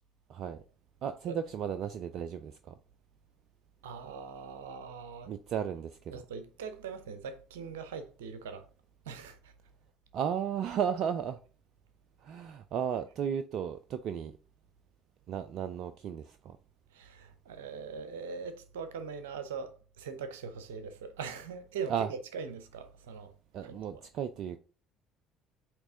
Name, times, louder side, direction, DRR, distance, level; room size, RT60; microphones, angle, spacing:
voice 1, 1.0-2.7 5.3-6.2 10.1-11.4 12.2-14.4 15.3-16.6 21.9-22.1 23.5-24.6, right 8 dB, 50° right, 0.4 m, -34 dB
voice 2, 3.8-5.3 6.1-8.7 9.0-9.5 16.9-23.3 23.6-24.0, right 5 dB, 70° right, 0.8 m, -41 dB
8.0 x 3.1 x 3.8 m
figure-of-eight pair, 55°, 0 cm